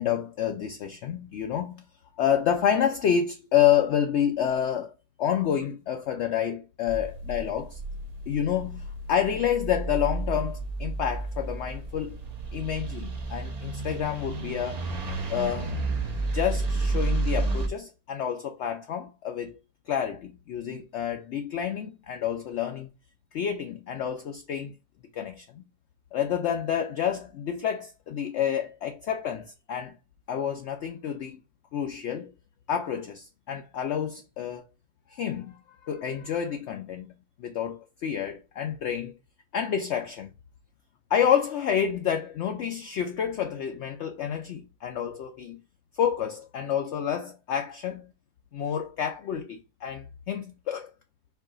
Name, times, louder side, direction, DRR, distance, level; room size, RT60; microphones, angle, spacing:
voice 1, 0.0-1.8 2.2-4.9 5.2-7.8 8.3-8.8 9.1-12.2 12.5-14.8 15.3-15.8 16.3-19.6 19.9-22.9 23.3-24.7 25.1-25.6 26.1-29.9 30.3-31.4 31.7-32.3 32.7-34.6 35.1-35.6 35.8-37.1 37.4-39.1 39.5-40.3 41.1-45.6 46.0-48.1 48.5-50.9, left 9 dB, 65° left, 0.7 m, -28 dB
sound 1, 6.9-17.7, right 2 dB, 45° right, 0.5 m, -31 dB
4.7 x 2.8 x 3.7 m
omnidirectional pair, 1.6 m